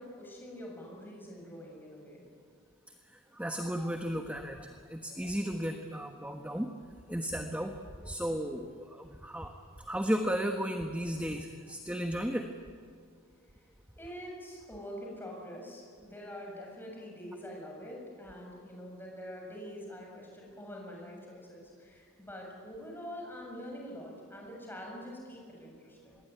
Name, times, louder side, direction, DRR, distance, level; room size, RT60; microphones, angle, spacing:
voice 1, 0.0-2.2 14.0-26.2, equal, 10° left, -1 dB, 7.3 m, -45 dB
voice 2, 3.1-6.7 7.1-9.5 9.8-12.5, equal, 5° right, 4 dB, 1.3 m, -34 dB
26.5 x 21.0 x 9.5 m, 2.2 s
head